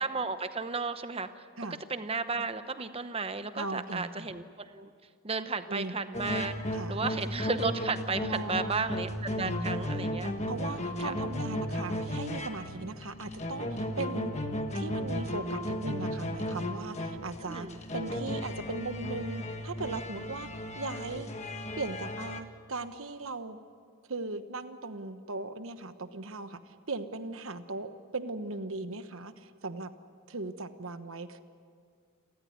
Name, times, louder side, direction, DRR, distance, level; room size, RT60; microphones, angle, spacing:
voice 1, 0.0-1.4 1.9-4.9 5.2-6.5 6.9-10.3 11.0-11.1 17.5-17.8, right 4 dB, 25° right, 11 dB, 0.9 m, -33 dB
voice 2, 3.5-4.3 5.7-5.9 6.7-7.0 8.2-8.9 9.4-9.8 10.4-14.3 14.7-17.7 17.9-20.5 20.7-21.3 21.8-23.6 24.1-29.9 30.3-31.4, right 3 dB, 65° right, 10 dB, 1.2 m, -38 dB
sound 1, 6.1-22.4, left 1 dB, 30° left, 1.4 m, -35 dB
29.5 x 14.0 x 9.5 m, 2.1 s
head